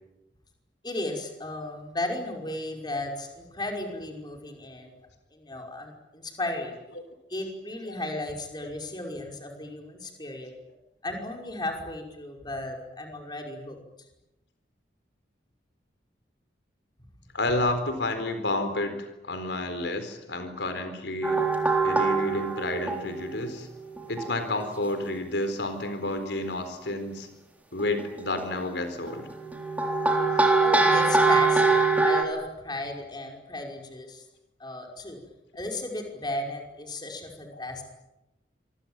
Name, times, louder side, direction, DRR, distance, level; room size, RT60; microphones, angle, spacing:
voice 1, 0.8-4.9 5.3-6.8 7.3-10.5 11.0-13.8 30.6-34.2 34.6-35.2 35.5-37.8, left 2 dB, 25° left, 2 dB, 5.5 m, -35 dB
voice 2, 17.3-21.4 21.8-23.7 24.1-27.3 27.7-29.3 37.5-37.6, left 2 dB, 75° left, 8 dB, 4.2 m, -30 dB
sound 1, 21.2-23.5 23.9-24.4 26.6-26.7 27.8-28.4 29.1-32.2, right 3 dB, 10° right, 3.9 m, -23 dB
27.0 x 23.5 x 9.1 m, 0.96 s
head